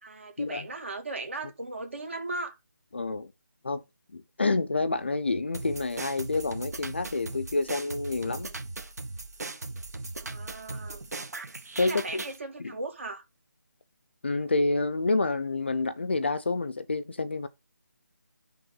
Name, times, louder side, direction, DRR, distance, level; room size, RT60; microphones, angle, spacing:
voice 1, 0.0-2.6 10.2-11.0 11.8-13.2, right 2 dB, 40° right, 2.2 m, -37 dB
voice 2, 2.9-3.3 3.6-3.8 4.1-8.5 11.8-12.2 12.6-12.7 14.2-17.5, left 3 dB, 35° left, 0.6 m, -28 dB
sound 1, 5.5-12.4, right 3 dB, 55° right, 1.3 m, -38 dB
10.0 x 3.6 x 3.9 m
figure-of-eight pair, 175°, 10 cm